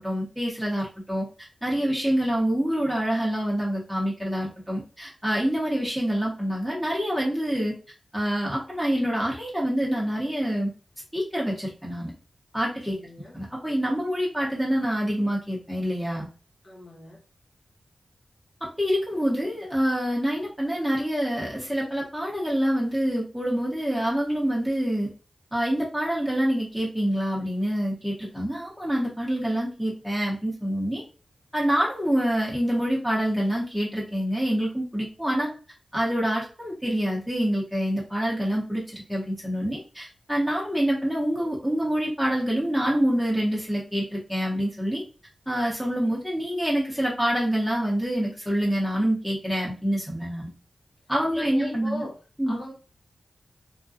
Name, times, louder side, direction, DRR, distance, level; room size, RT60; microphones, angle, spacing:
voice 1, 0.0-7.7 8.1-10.7 11.1-12.1 12.5-13.0 13.3-16.3 18.6-25.1 25.5-31.0 31.5-35.5 35.9-45.0 45.5-50.5 51.1-52.1 52.4-52.6, equal, ahead, -5 dB, 0.9 m, -26 dB
voice 2, 12.9-13.3 16.6-17.2 51.3-52.2 52.5-52.7, left 1 dB, 55° left, -4 dB, 1.0 m, -37 dB
2.4 x 2.2 x 2.5 m, 0.35 s
cardioid pair, 70°, 0 cm